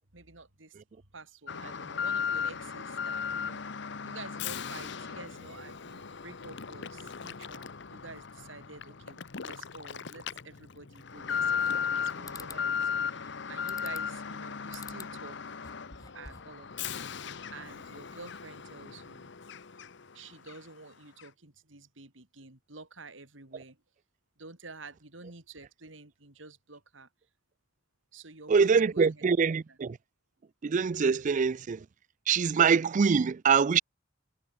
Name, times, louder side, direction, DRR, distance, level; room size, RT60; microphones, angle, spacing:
voice 1, 0.1-0.8 1.1-3.6 4.0-15.6 16.1-19.3 20.1-23.8 24.4-27.1 28.1-29.2, right 3 dB, 85° right, 4.3 m, -49 dB
Alarm, 1.5-20.1 20.5-20.6 21.2-21.3, left 7 dB, 65° left, 1.0 m, -36 dB
sound 1, 11.3-11.9 12.3-12.6 13.7-14.2 14.7-15.1 15.5-16.6, left 4 dB, 20° left, 3.2 m, -48 dB
voice 2, 28.5-30.0 30.6-31.9 32.3-33.8, right 6 dB, 40° right, 0.4 m, -24 dB
head